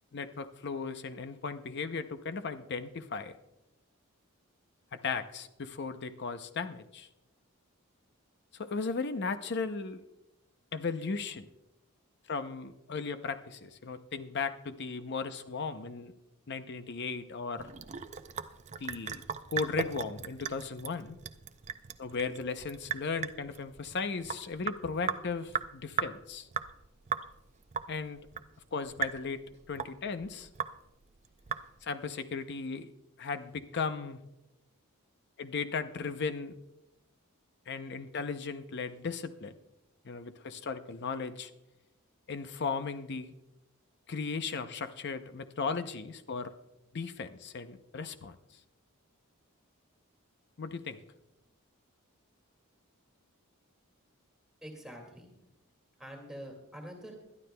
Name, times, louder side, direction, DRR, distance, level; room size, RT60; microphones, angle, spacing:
voice 1, 0.1-3.3 4.9-7.1 8.5-10.0 10.7-11.5 12.3-16.1 16.5-17.7 18.8-19.2 19.5-21.2 22.0-26.5 27.9-28.2 28.7-30.5 31.8-32.9 33.2-34.2 35.4-36.5 37.7-39.5 40.0-41.5 42.3-43.3 44.1-46.5 46.9-48.4 50.6-51.0, left 4 dB, 50° left, 10 dB, 0.6 m, -36 dB
Sink (filling or washing) / Drip, 17.6-32.0, right 7 dB, 30° right, 0.5 m, -38 dB
voice 2, 54.6-55.4 56.0-57.1, equal, ahead, 1 dB, 2.1 m, -45 dB
21.5 x 12.0 x 2.2 m, 0.92 s
head